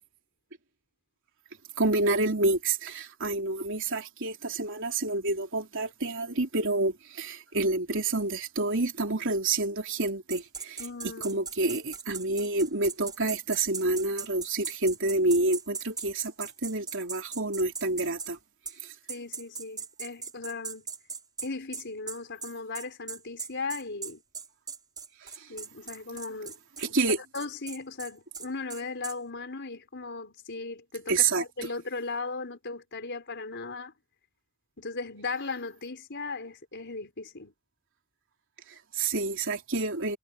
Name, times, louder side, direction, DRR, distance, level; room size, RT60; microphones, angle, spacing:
voice 1, 1.8-18.4 18.8-18.9 25.2-25.5 26.8-27.2 31.1-31.4 38.7-40.2, right 2 dB, 60° right, 3.6 m, -28 dB
sound 1, 10.3-18.3 18.7-18.8 19.1-29.2, right 5 dB, 20° right, 6.6 m, -39 dB
voice 2, 10.8-11.4 19.1-20.9 21.4-24.2 25.5-26.6 27.3-33.9 34.8-37.5, left 3 dB, 55° left, 4.6 m, -37 dB
head